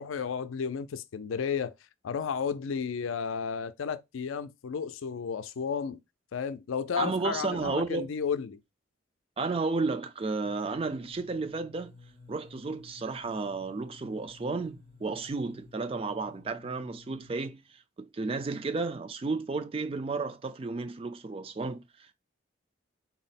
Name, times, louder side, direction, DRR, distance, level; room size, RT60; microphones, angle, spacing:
voice 1, 0.0-1.7 2.0-6.0 6.3-8.6, left 6 dB, 90° left, 0.4 m, -33 dB
voice 2, 7.0-8.1 9.4-11.9 12.3-22.1, right 3 dB, 30° right, 0.3 m, -33 dB
sound 1, 10.4-17.3, left 3 dB, 75° right, 2.5 m, -54 dB
4.1 x 2.1 x 4.0 m
head